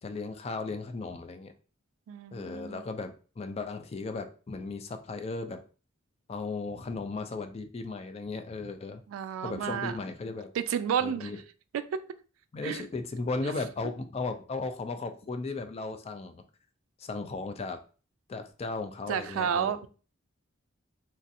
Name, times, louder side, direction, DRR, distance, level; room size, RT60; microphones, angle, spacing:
voice 1, 0.0-1.5 2.3-5.6 6.3-9.0 9.4-10.5 11.0-11.4 12.5-16.4 17.0-17.8 18.3-19.7, left 3 dB, 30° left, 0.3 m, -36 dB
voice 2, 2.1-2.8 9.1-9.9 10.6-11.3 11.7-12.0 12.6-12.8 19.1-19.9, right 8 dB, 85° right, 0.3 m, -31 dB
3.0 x 2.7 x 2.5 m
head